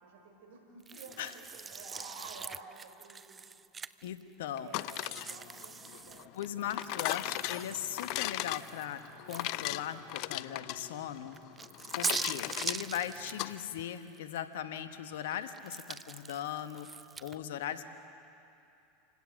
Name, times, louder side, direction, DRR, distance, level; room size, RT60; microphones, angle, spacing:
voice 1, 0.0-3.5 4.6-6.4 6.8-6.9, right 3 dB, 75° right, 3 dB, 4.4 m, -51 dB
sound 1, 0.9-4.2 4.7-9.9 10.3-10.4 11.3-14.4 14.8-17.4, right 5 dB, 20° right, 0.5 m, -42 dB
voice 2, 4.0-4.7 6.3-9.0 9.3-11.4 12.0-16.9 17.2-17.9, left 10 dB, 75° left, 9 dB, 1.2 m, -39 dB
sound 2, 4.6-13.5, left 18 dB, 60° left, 0.4 m, -38 dB
27.5 x 17.0 x 6.5 m, 2.7 s
hypercardioid pair, 90°, 0 cm